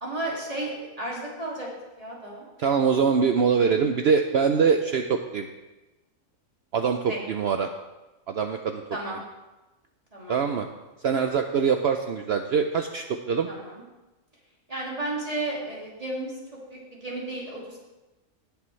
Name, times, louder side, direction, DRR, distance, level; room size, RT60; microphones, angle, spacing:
voice 1, 0.0-1.7 2.0-2.4 7.1-7.2 8.9-9.2 10.1-10.4 13.5-13.8 14.7-17.8, right 2 dB, 25° right, -5 dB, 2.5 m, -33 dB
voice 2, 2.6-5.5 6.7-7.7 8.3-8.8 10.3-10.7 11.0-13.5, right 6 dB, 60° right, 5 dB, 0.7 m, -23 dB
18.5 x 6.8 x 3.2 m, 1.1 s
omnidirectional pair, 1.4 m